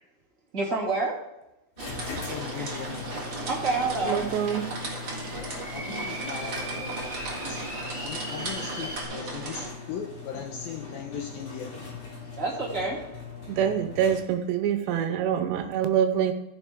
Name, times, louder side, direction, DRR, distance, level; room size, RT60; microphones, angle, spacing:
voice 1, 0.5-1.1 2.6-2.7 3.5-4.3 7.0-7.7 12.3-13.0, right 3 dB, 25° right, -4 dB, 1.9 m, -29 dB
sound 1, 1.8-14.6, left 5 dB, 35° left, 3.5 m, -41 dB
sound 2, 1.8-9.7, right 3 dB, 45° right, 1.5 m, -36 dB
sound 3, 1.9-9.0, right 1 dB, 10° right, 2.7 m, -41 dB
voice 2, 2.0-3.0 5.3-7.6 8.0-11.8 14.8-15.1, left 7 dB, 75° left, 2 dB, 2.2 m, -39 dB
voice 3, 4.0-4.7 13.5-16.3, right 9 dB, 75° right, 8 dB, 3.0 m, -25 dB
14.5 x 7.1 x 3.6 m, 0.93 s
omnidirectional pair, 5.2 m